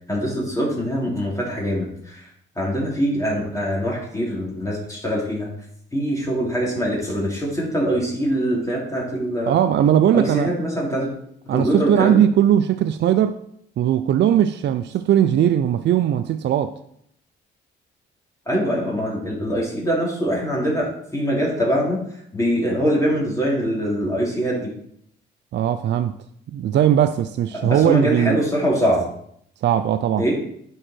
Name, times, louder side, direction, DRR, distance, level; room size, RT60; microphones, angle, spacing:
voice 1, 0.1-2.3 2.5-5.5 5.9-9.5 10.1-11.1 11.4-12.2 18.5-22.0 22.3-24.7 27.5-29.1 30.2-30.4, equal, 15° left, 3.0 m, -23 dB
voice 2, 9.5-10.5 11.5-13.4 13.8-16.7 25.5-26.2 26.5-28.4 29.6-30.3, right 10 dB, 60° right, 0.5 m, -19 dB
9.8 x 4.8 x 4.4 m
cardioid pair, 90°, 20 cm